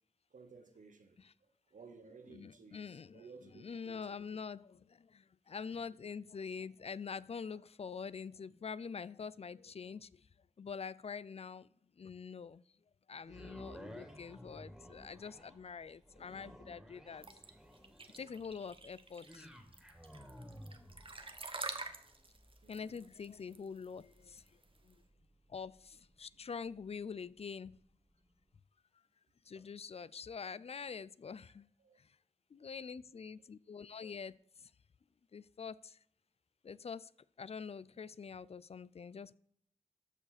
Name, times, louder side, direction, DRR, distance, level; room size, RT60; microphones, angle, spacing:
voice 1, 0.3-4.2 5.4-5.5 22.6-23.0 29.5-29.6 31.8-32.0 32.6-32.7, right 4 dB, 90° right, 7 dB, 1.1 m, -57 dB
voice 2, 2.3-3.2 3.5-10.3 10.6-11.7 12.0-12.6 13.1-17.3 18.2-19.5 22.7-25.0 25.5-27.8 29.5-31.7 32.0-32.2 32.5-34.7 35.3-36.0 36.6-37.1 37.4-39.3, left 6 dB, 50° left, 19 dB, 0.4 m, -45 dB
sound 1, 13.2-27.4 27.9-28.0, equal, 5° right, 2.2 m, -56 dB
sound 2, 17.2-24.9, right 3 dB, 45° right, 1.0 m, -47 dB
13.5 x 4.8 x 4.2 m, 0.65 s
cardioid pair, 45°, 13 cm